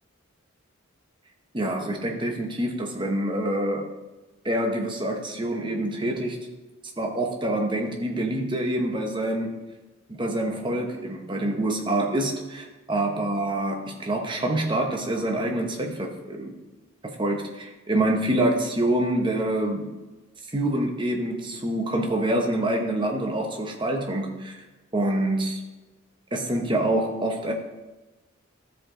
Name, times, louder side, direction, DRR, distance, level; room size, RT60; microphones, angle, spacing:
voice 1, 1.5-3.9 4.4-6.5 7.0-9.6 10.1-16.5 17.2-19.9 20.5-24.6 24.9-25.6 26.3-27.5, right 1 dB, 25° right, 2 dB, 1.0 m, -26 dB
13.0 x 4.9 x 3.8 m, 1.1 s
head